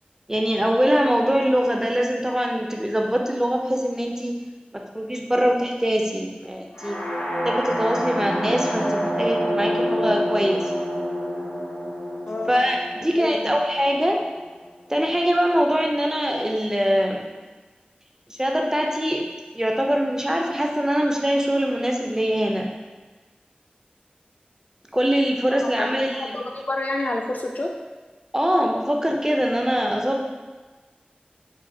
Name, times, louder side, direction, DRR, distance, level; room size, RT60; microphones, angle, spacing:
voice 1, 0.3-4.3 4.9-7.0 7.4-10.6 12.5-14.2 14.9-17.2 18.3-19.2 19.5-22.7 24.9-26.3 28.3-30.2, equal, 20° right, 1 dB, 0.5 m, -23 dB
sound 1, 6.7-14.6, equal, 90° left, 0.8 m, -27 dB
voice 2, 12.3-12.6 13.2-13.5 25.6-27.7, left 2 dB, 55° left, 1 dB, 0.5 m, -29 dB
5.0 x 2.4 x 2.7 m, 1.3 s
wide cardioid pair, 45°, 3 cm